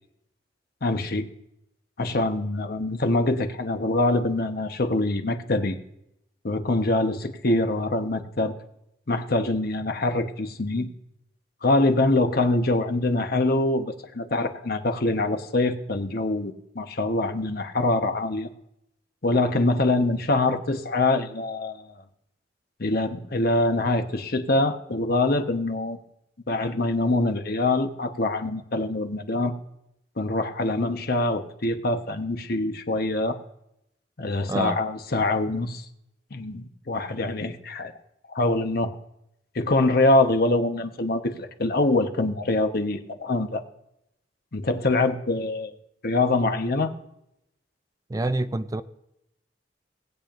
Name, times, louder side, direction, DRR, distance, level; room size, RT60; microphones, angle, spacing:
voice 1, 0.8-1.3 2.0-5.8 6.4-8.5 9.1-10.9 11.6-18.5 19.2-21.9 22.8-26.0 26.5-29.5 30.2-33.4 34.2-35.8 36.3-37.9 38.3-38.9 39.5-43.6 44.5-45.7 46.0-46.9, left 2 dB, 55° left, 1.1 m, -24 dB
voice 2, 34.5-34.8 48.1-48.8, right 2 dB, 20° right, 0.4 m, -26 dB
19.5 x 8.7 x 2.6 m
head